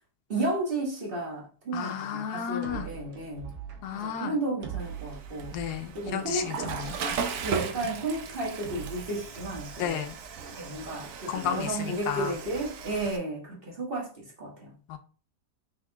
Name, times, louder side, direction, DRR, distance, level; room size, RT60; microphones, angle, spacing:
voice 1, 0.3-3.5 3.9-5.5 5.9-6.5 7.4-10.0 10.5-14.7, right 2 dB, 35° right, 1.3 m, -33 dB
voice 2, 1.7-2.9 3.8-4.4 5.5-7.0 9.8-10.2 11.3-12.3 14.9-15.0, left 8 dB, 80° left, 1.1 m, -32 dB
sound 1, 2.6-10.6, right 8 dB, 85° right, 1.4 m, -43 dB
Water / Toilet flush, 4.8-13.2, right 6 dB, 65° right, 0.9 m, -37 dB
3.7 x 3.5 x 3.4 m
omnidirectional pair, 1.7 m